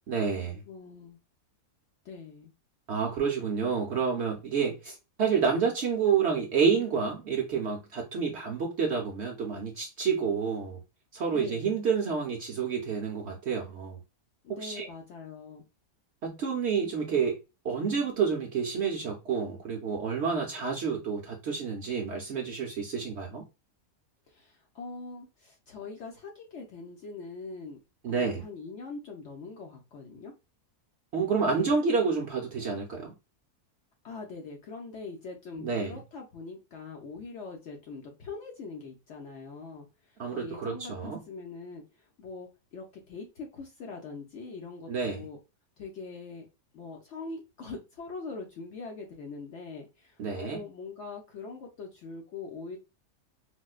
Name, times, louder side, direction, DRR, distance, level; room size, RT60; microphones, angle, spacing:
voice 1, 0.1-0.6 2.9-10.8 11.1-14.0 14.6-14.9 16.2-17.3 17.6-23.4 28.0-28.4 31.1-33.1 35.6-35.9 40.2-41.2 44.9-45.2 50.2-50.6, right 6 dB, 60° right, 0.7 m, -29 dB
voice 2, 0.7-1.2 2.0-2.5 11.3-11.8 14.4-15.6 24.3-27.8 28.1-30.3 31.5-31.7 34.0-39.9 40.3-45.4 45.8-46.5 46.7-52.8, left 4 dB, 60° left, 0.8 m, -42 dB
4.3 x 2.1 x 2.3 m
omnidirectional pair, 1.6 m